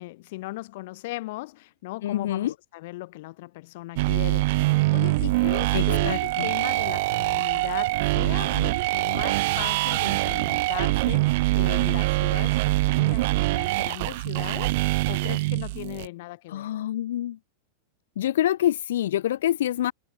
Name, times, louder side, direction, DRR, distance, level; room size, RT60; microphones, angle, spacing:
voice 1, 0.0-16.7, left 20 dB, 55° left, 2.7 m, -38 dB
voice 2, 2.0-2.5 5.7-6.5 16.5-17.4 18.2-19.9, left 12 dB, 85° left, 0.5 m, -26 dB
sound 1, 4.0-16.1, right 21 dB, 50° right, 0.3 m, -24 dB
supercardioid pair, 165°, 0 cm